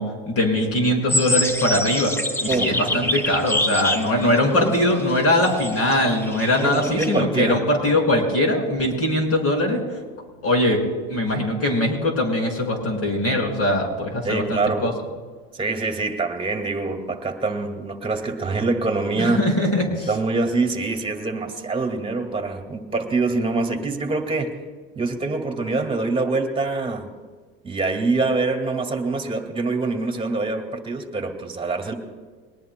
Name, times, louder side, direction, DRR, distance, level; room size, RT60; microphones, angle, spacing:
voice 1, 0.0-2.1 2.4-9.8 10.4-10.8 11.1-14.9 19.2-20.1, left 1 dB, 50° left, 2 dB, 5.6 m, -21 dB
sound 1, 1.1-7.2, left 1 dB, 10° left, 0.8 m, -26 dB
voice 2, 2.5-3.0 6.6-7.7 14.2-14.9 15.5-19.4 20.1-24.6 25.0-27.1 27.6-31.9, right 3 dB, 15° right, 4 dB, 2.0 m, -25 dB
22.5 x 19.5 x 2.2 m, 1.5 s
supercardioid pair, 110°, 31 cm